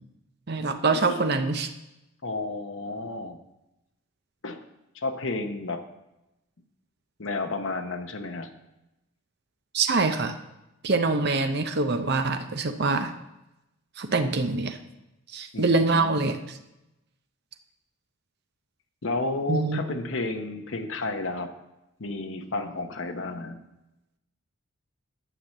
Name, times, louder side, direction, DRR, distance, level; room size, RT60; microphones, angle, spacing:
voice 1, 0.5-1.7 9.7-10.3 10.8-13.1 14.0-14.8 15.3-16.4 19.5-19.8, right 3 dB, 50° right, 7 dB, 0.6 m, -24 dB
voice 2, 2.2-3.4 4.4-4.6 4.9-5.8 7.2-8.5 15.5-16.2 19.0-21.5 22.0-23.6, left 2 dB, 60° left, 6 dB, 0.9 m, -31 dB
9.3 x 5.7 x 7.3 m, 0.95 s
head